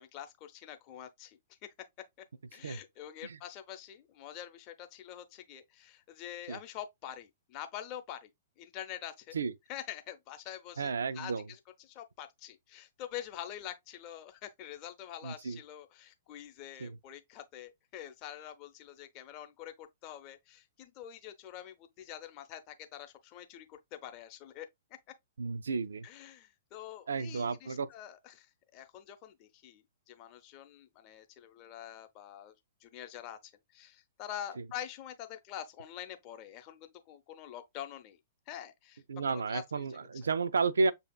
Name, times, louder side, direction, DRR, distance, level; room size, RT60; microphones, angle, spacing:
voice 1, 0.0-1.7 2.5-8.3 8.6-9.4 9.7-24.7 26.0-32.5 32.8-38.2 38.5-39.9, left 11 dB, 35° left, 0.7 m, -46 dB
voice 2, 10.8-11.5 15.2-15.6 16.8-17.0 25.4-26.1 27.1-27.9 34.6-34.7 39.1-40.9, right 4 dB, 65° right, 0.4 m, -32 dB
6.9 x 2.7 x 2.2 m
figure-of-eight pair, 110°, 0 cm